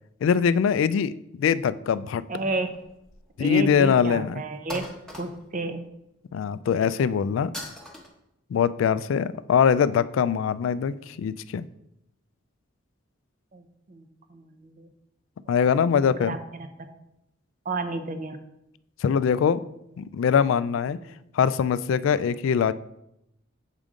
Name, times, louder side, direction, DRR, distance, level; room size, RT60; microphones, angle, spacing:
voice 1, 0.2-2.2 3.4-4.4 6.3-7.5 8.5-11.7 15.5-16.4 19.0-19.6 20.0-21.0 21.3-22.7, left 7 dB, 70° left, 17 dB, 0.3 m, -22 dB
voice 2, 2.3-2.7 3.4-4.9 5.2-5.8 13.5-14.9 15.9-16.9 17.7-18.4 20.9-21.1, right 2 dB, 40° right, 8 dB, 0.6 m, -32 dB
sound 1, 2.5-3.4 3.7-3.8 4.7-5.7 7.5-8.1, left 1 dB, 5° left, 1.0 m, -40 dB
7.4 x 5.1 x 3.7 m, 0.83 s
head